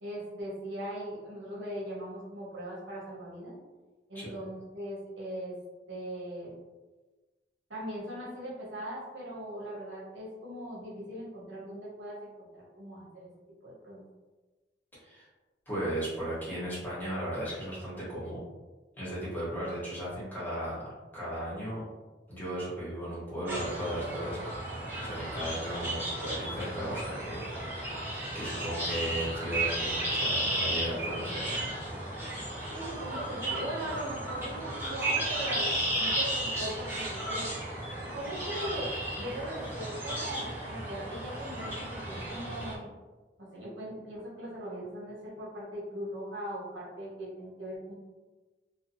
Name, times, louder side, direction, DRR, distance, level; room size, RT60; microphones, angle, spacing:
voice 1, 0.0-3.5 4.1-5.6 5.9-6.5 7.7-13.3 13.6-14.0 32.7-37.5 38.0-42.9 43.5-47.9, right 1 dB, 85° right, -6 dB, 0.9 m, -40 dB
voice 2, 15.7-18.4 19.0-20.9 21.1-21.8 22.3-27.4 27.8-27.9 28.3-31.7, equal, 10° left, -10 dB, 1.1 m, -36 dB
sound 1, 23.5-42.7, right 1 dB, 10° right, 0.6 m, -34 dB
2.6 x 2.2 x 2.6 m, 1.2 s
head